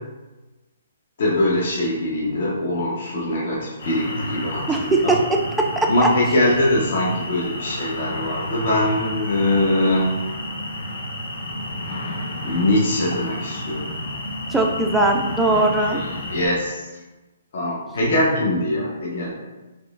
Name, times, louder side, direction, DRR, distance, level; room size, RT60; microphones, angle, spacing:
voice 1, 1.2-5.2 5.9-10.2 12.4-13.9 15.9-16.9 17.5-19.3, left 1 dB, 55° left, -4 dB, 0.8 m, -22 dB
sound 1, 3.8-16.5, left 1 dB, 80° left, 1.1 m, -31 dB
voice 2, 4.7-5.9 14.5-16.0, right 2 dB, 5° right, 0 dB, 0.3 m, -20 dB
3.7 x 3.0 x 2.4 m, 1.1 s
hypercardioid pair, 160°, 0 cm